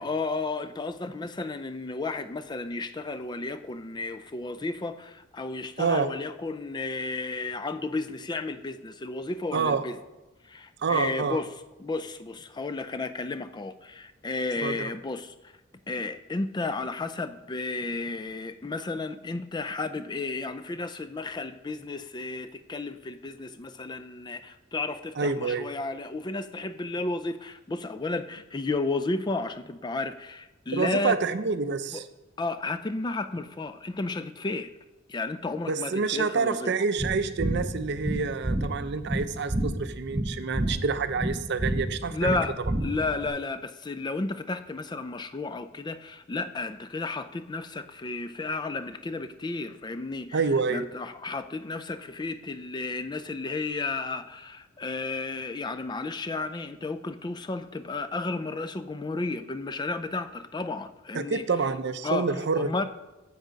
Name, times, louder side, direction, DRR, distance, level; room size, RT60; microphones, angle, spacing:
voice 1, 0.0-10.0 10.4-11.5 11.8-15.5 15.9-31.2 31.9-32.0 32.4-34.7 35.1-36.7 42.1-50.4 50.7-61.4 62.0-62.9, left 3 dB, 20° left, 12 dB, 0.4 m, -33 dB
voice 2, 9.5-9.8 10.8-11.4 14.6-14.9 25.2-25.7 30.7-32.0 35.7-42.4 50.3-50.8 61.1-62.9, right 4 dB, 60° right, 11 dB, 0.5 m, -27 dB
sound 1, 37.0-43.3, right 1 dB, 25° right, 0.7 m, -30 dB
7.8 x 7.4 x 5.1 m, 1.1 s
head